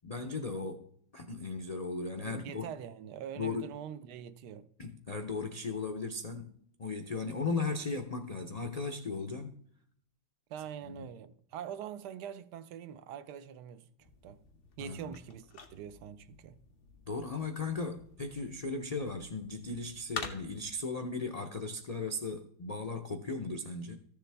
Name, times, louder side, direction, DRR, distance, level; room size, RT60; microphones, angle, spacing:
voice 1, 0.0-0.9 1.1-2.6 3.4-3.7 4.8-6.5 6.8-9.5 10.8-11.1 14.8-15.1 17.1-24.0, left 3 dB, 85° left, 0.3 m, -37 dB
voice 2, 2.2-4.7 10.5-13.9 14.2-14.4 14.8-16.6, right 8 dB, 85° right, 1.2 m, -44 dB
sound 1, 14.0-20.8, left 4 dB, 40° left, 1.0 m, -48 dB
14.0 x 6.9 x 3.4 m
omnidirectional pair, 1.7 m